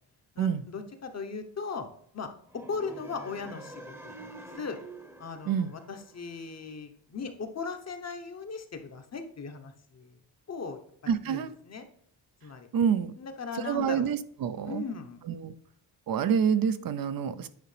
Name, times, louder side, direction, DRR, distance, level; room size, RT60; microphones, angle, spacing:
voice 1, 0.3-1.9 2.1-4.8 5.2-10.2 10.5-10.8 11.2-11.9 12.4-12.7 13.2-14.1 14.7-15.2, left 5 dB, 35° left, 0.9 m, -38 dB
sound 1, 2.5-6.6, right 1 dB, 5° right, 0.9 m, -47 dB
voice 2, 11.1-11.6 12.7-13.1 13.7-14.8 15.3-15.5 16.1-17.5, right 7 dB, 55° right, 0.6 m, -27 dB
9.5 x 4.9 x 3.3 m
cardioid pair, 105°, 43 cm